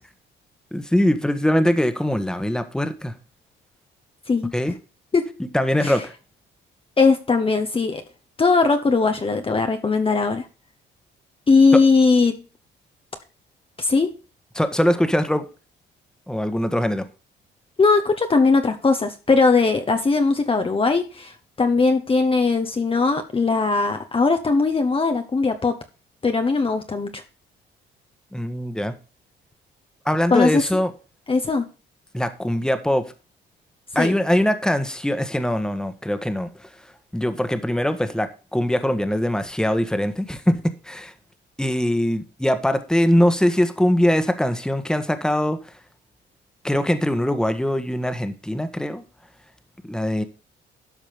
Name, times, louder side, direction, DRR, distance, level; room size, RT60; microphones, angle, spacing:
voice 1, 0.7-3.1 4.5-4.8 5.5-6.1 14.5-15.5 16.3-17.1 28.3-28.9 30.0-30.9 32.1-33.0 33.9-36.7 37.1-40.6 40.8-41.1 41.6-45.6 46.6-49.0 49.8-50.2, equal, 5° left, 9 dB, 1.5 m, -22 dB
voice 2, 7.0-8.0 8.4-10.5 11.5-12.4 13.8-14.1 17.8-25.8 26.2-27.2 30.3-30.8 31.3-31.6 34.0-34.2, left 4 dB, 25° left, 5 dB, 1.1 m, -19 dB
12.5 x 5.1 x 5.3 m, 0.33 s
cardioid pair, 90°, 20 cm